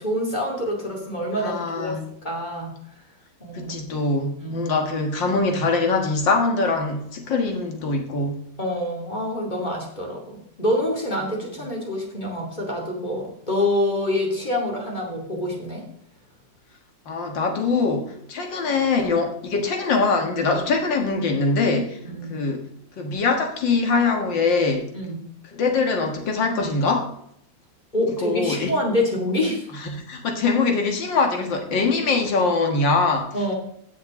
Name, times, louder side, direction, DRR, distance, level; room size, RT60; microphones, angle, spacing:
voice 1, 0.0-2.7 3.4-3.8 4.4-4.7 8.6-15.8 22.0-22.4 24.9-25.3 27.9-29.7 33.3-33.5, left 1 dB, 25° left, -1 dB, 2.7 m, -26 dB
voice 2, 1.4-2.1 3.5-8.4 17.1-22.0 22.3-22.6 23.0-24.9 25.5-27.1 28.2-28.7 29.8-33.3, left 3 dB, 75° left, 3 dB, 2.3 m, -23 dB
15.5 x 6.8 x 3.7 m, 0.70 s
omnidirectional pair, 2.0 m